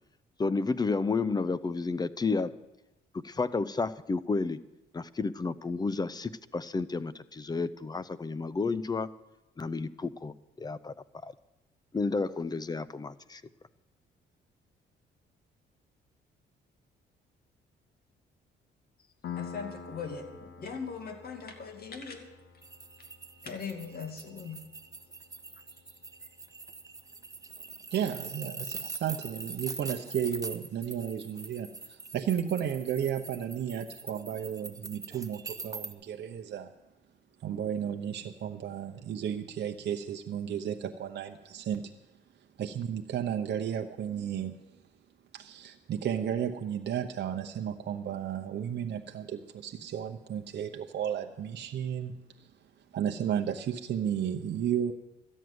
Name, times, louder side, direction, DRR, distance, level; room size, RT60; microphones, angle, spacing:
voice 1, 0.4-2.5 3.2-4.6 4.9-9.1 9.6-10.9 11.2-11.3 11.9-13.4, left 4 dB, 20° left, 17 dB, 0.5 m, -31 dB
Piano, 19.2-26.6, left 7 dB, 70° left, 1.1 m, -48 dB
voice 2, 19.3-22.3 23.4-24.6, left 5 dB, 50° left, 5 dB, 2.2 m, -40 dB
sound 1, 22.6-35.9, right 3 dB, 15° right, 0.9 m, -43 dB
voice 3, 27.9-36.7 37.4-41.9 42.6-44.6 45.3-52.5 52.9-54.9, right 9 dB, 60° right, 4 dB, 0.8 m, -33 dB
13.5 x 6.4 x 9.4 m, 1.0 s
cardioid pair, 90°, 20 cm